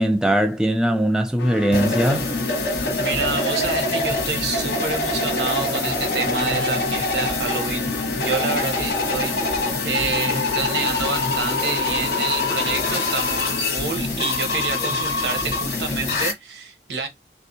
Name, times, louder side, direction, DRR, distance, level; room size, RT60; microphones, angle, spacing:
voice 1, 0.0-2.3, right 1 dB, 5° right, 0.3 m, -20 dB
sound 1, 1.4-14.1, left 3 dB, 75° left, 0.5 m, -34 dB
sound 2, 1.7-16.3, left 3 dB, 55° left, 1.1 m, -24 dB
voice 2, 3.0-7.9 8.2-17.1, right 4 dB, 75° right, 1.0 m, -28 dB
3.3 x 2.6 x 2.7 m
head